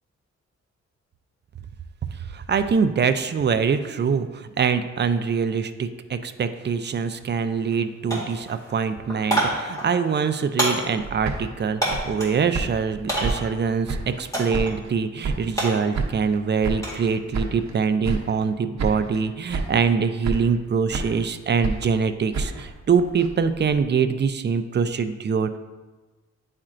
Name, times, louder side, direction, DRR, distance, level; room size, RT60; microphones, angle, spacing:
voice 1, 2.3-25.6, right 6 dB, 40° right, 10 dB, 0.4 m, -24 dB
sound 1, 6.8-7.0 7.3-7.8 8.1-12.4 13.1-13.6 14.3-14.8 15.1-17.1 17.4-17.8, right 1 dB, 10° left, 1.9 m, -28 dB
sound 2, 11.0-14.3 14.5-15.7 15.9-17.8 18.0-18.5 18.8-19.2 19.5-19.9 20.2-21.3 21.6-23.8, right 3 dB, 65° right, 0.8 m, -31 dB
9.9 x 4.4 x 2.5 m, 1.2 s
wide cardioid pair, 110°, 29 cm